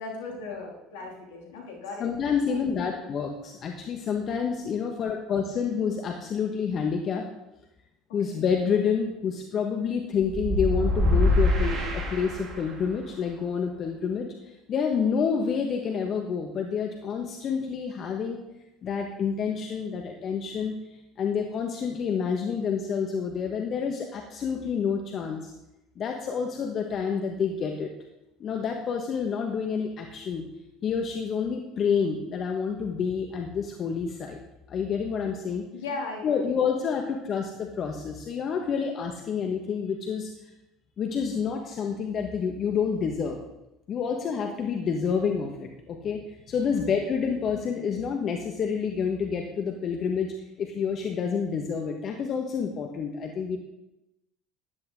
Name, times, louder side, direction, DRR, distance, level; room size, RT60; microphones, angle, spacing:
voice 1, 0.0-2.0 2.6-2.9 8.2-8.4 35.7-36.4 46.7-46.9, left 3 dB, 75° left, 0 dB, 3.1 m, -37 dB
voice 2, 2.0-7.3 8.1-14.3 14.7-18.4 18.8-20.8 21.2-25.5 26.0-27.9 28.4-30.4 30.8-34.4 34.7-35.6 36.2-40.3 41.0-43.4 43.9-53.6, left 6 dB, 45° left, 3 dB, 1.4 m, -28 dB
sound 1, 10.2-12.9, left 1 dB, 40° right, 3.3 m, -24 dB
13.5 x 10.5 x 3.8 m, 0.91 s
hypercardioid pair, 65°, 0 cm